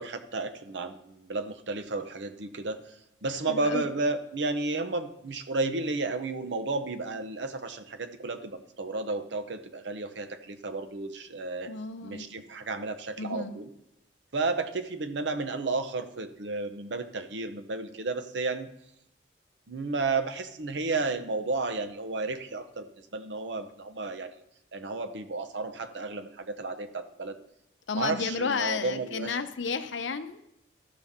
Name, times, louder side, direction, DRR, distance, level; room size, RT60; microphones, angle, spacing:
voice 1, 0.0-11.7 12.0-13.7 14.3-18.7 19.7-22.9 23.1-24.3 24.7-27.4 28.0-29.4, right 3 dB, 70° right, 10 dB, 0.7 m, -32 dB
voice 2, 3.5-3.9 11.7-12.4 13.2-13.5 27.9-30.5, left 4 dB, 75° left, 10 dB, 0.6 m, -32 dB
13.5 x 5.6 x 3.6 m, 0.81 s
head